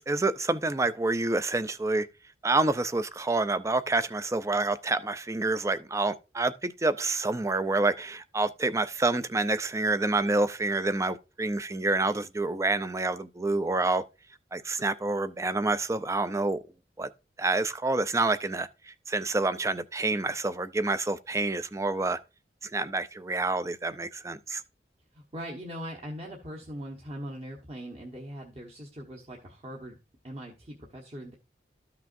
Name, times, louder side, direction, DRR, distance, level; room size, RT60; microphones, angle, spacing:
voice 1, 0.0-2.1 2.4-14.0 14.5-16.6 17.0-17.1 17.4-22.2 22.6-24.6, right 2 dB, 15° right, 0.4 m, -28 dB
voice 2, 25.1-30.0 30.2-31.3, equal, 35° right, 1.2 m, -41 dB
13.0 x 5.9 x 2.6 m
head